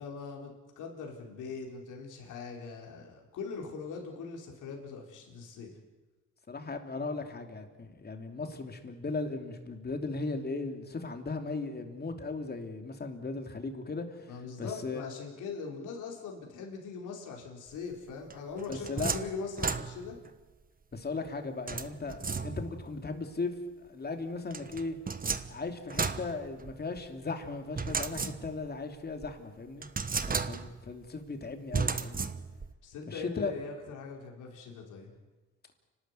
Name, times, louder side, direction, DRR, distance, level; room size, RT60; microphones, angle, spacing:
voice 1, 0.0-5.8 14.3-20.2 32.8-35.1, left 5 dB, 85° left, 0 dB, 4.5 m, -41 dB
voice 2, 6.5-15.0 18.7-19.2 20.9-23.5 23.8-25.0 25.5-29.9 30.3-32.3 33.1-33.5, left 3 dB, 30° left, 5 dB, 3.1 m, -37 dB
sound 1, 18.3-20.3 21.7-22.9 24.5-27.0 27.8-28.8 29.2-29.3 29.8-30.9 31.7-32.7, right 5 dB, 30° right, 1.3 m, -34 dB
29.5 x 13.0 x 9.6 m, 1.2 s
cardioid pair, 90°, 30 cm